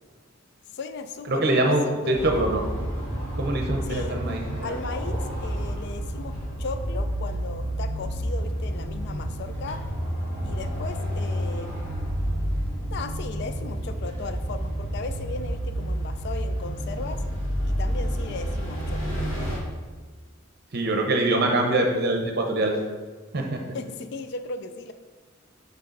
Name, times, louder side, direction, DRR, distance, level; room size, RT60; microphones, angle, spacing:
voice 1, 0.7-2.5 3.8-4.2 4.6-9.8 10.4-11.9 12.9-17.2 17.6-19.1 23.7-24.9, left 3 dB, 55° left, 9 dB, 0.4 m, -37 dB
voice 2, 1.3-2.6 3.4-4.7 20.7-22.7 23.3-23.6, right 2 dB, 50° right, 2 dB, 0.7 m, -24 dB
sound 1, 2.1-19.6, equal, 80° left, 2.1 m, -30 dB
6.6 x 5.4 x 3.9 m, 1.5 s
head